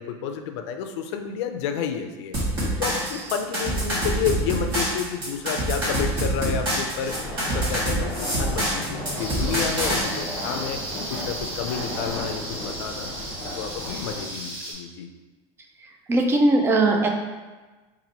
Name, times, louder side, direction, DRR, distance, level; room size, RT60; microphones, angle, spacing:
voice 1, 0.0-2.4 2.8-7.1 7.5-10.8 11.1-13.1 13.6-15.1, left 7 dB, 80° left, 6 dB, 0.4 m, -30 dB
sound 1, 2.3-10.0, right 1 dB, 35° right, 1.2 m, -26 dB
sound 2, 7.1-14.2, left 1 dB, 15° left, 1.3 m, -35 dB
sound 3, 9.2-14.7, right 1 dB, 65° right, 1.5 m, -35 dB
voice 2, 16.1-17.1, right 2 dB, 15° right, 3 dB, 0.3 m, -19 dB
2.8 x 2.5 x 4.0 m, 1.2 s
supercardioid pair, 150°, 14 cm